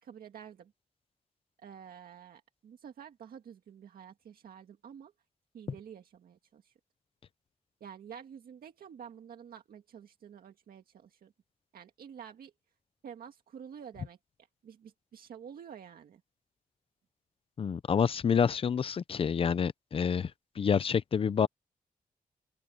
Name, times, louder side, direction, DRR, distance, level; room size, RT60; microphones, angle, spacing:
voice 1, 0.0-0.7 1.6-5.1 5.5-6.7 7.8-11.3 11.7-12.5 13.0-14.2 14.6-16.2, right 8 dB, 80° right, 1.9 m, -49 dB
voice 2, 17.6-20.3 20.6-21.5, left 7 dB, 40° left, 0.5 m, -28 dB
open air
wide cardioid pair, 175°, 15 cm